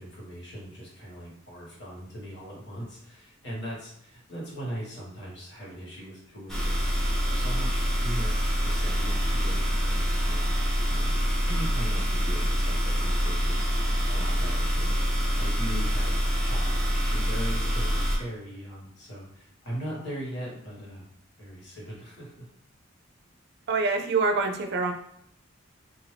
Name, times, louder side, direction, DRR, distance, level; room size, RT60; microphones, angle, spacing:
voice 1, 0.0-10.5 10.9-21.1 21.4-22.4, equal, 60° left, -5 dB, 1.4 m, -40 dB
sound 1, 6.5-18.2, equal, ahead, 0.7 m, -26 dB
voice 2, 23.7-24.9, right 4 dB, 55° right, 5 dB, 0.4 m, -25 dB
2.6 x 2.5 x 3.3 m, 0.73 s
head